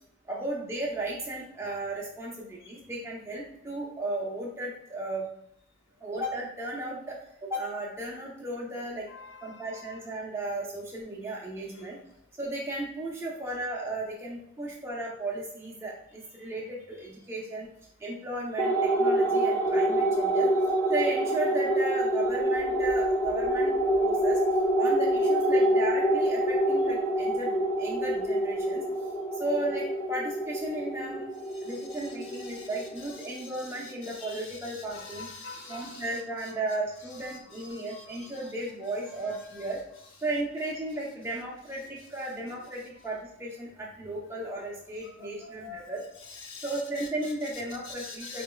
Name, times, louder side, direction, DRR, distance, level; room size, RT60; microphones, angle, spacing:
voice 1, 0.3-5.3 6.0-9.1 9.4-12.0 12.4-17.7 18.0-20.5 20.9-24.4 24.8-28.8 29.4-31.2 31.6-35.3 35.7-39.8 40.2-46.0 46.6-48.4, right 2 dB, 15° right, -3 dB, 0.7 m, -35 dB
voice 2, 9.1-10.0 31.7-32.7 33.2-36.5 37.5-38.3 39.3-39.7 44.4-44.5 45.0-45.1 45.4-46.0 46.3-48.4, left 4 dB, 80° left, 0 dB, 0.7 m, -46 dB
sound 1, 18.6-33.4, right 1 dB, 15° left, 0.4 m, -26 dB
4.2 x 3.3 x 2.2 m, 0.74 s
head